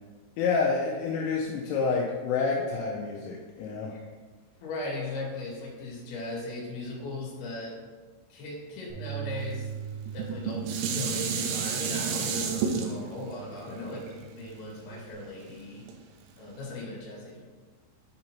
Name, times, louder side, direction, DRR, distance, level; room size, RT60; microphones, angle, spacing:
voice 1, 0.4-3.9, left 4 dB, 85° left, -2 dB, 3.1 m, -28 dB
voice 2, 4.6-7.7 8.3-9.7 10.1-15.8 16.4-17.4, left 2 dB, 60° left, -5 dB, 3.5 m, -38 dB
Bass guitar, 8.9-15.1, right 9 dB, 40° left, 1.7 m, -42 dB
Dishes pots and pans, 10.1-15.3 15.9-16.0, right 6 dB, 85° right, 2.8 m, -31 dB
8.5 x 5.3 x 2.9 m, 1.4 s
omnidirectional pair, 5.7 m